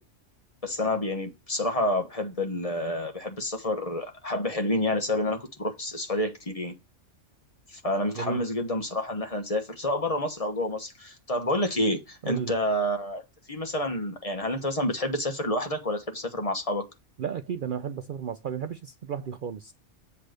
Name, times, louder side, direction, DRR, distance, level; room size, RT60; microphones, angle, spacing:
voice 1, 0.6-6.7 7.7-13.2 13.5-16.8, left 1 dB, 30° left, 1.2 m, -29 dB
voice 2, 12.2-12.6 17.2-19.7, right 7 dB, 55° right, 0.6 m, -33 dB
8.2 x 3.3 x 6.4 m
omnidirectional pair, 1.3 m